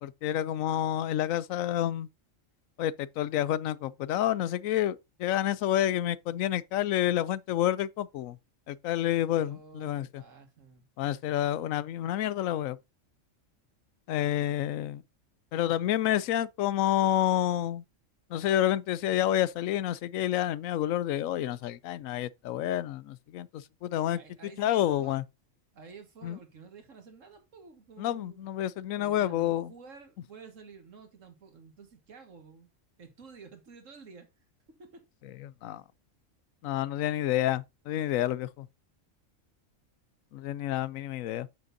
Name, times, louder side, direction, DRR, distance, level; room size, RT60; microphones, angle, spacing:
voice 1, 0.0-2.1 2.8-8.4 8.7-10.2 11.0-12.8 14.1-15.0 15.5-17.8 18.3-24.2 24.6-25.2 26.2-26.4 28.0-29.7 35.4-35.8 36.6-38.7 40.3-41.5, left 12 dB, 85° left, 1.0 m, -29 dB
voice 2, 9.2-10.8 24.1-25.2 25.7-28.5 29.0-32.7 33.0-34.3 34.8-35.1, right 5 dB, 75° right, 2.0 m, -51 dB
8.7 x 6.3 x 2.6 m
omnidirectional pair, 1.4 m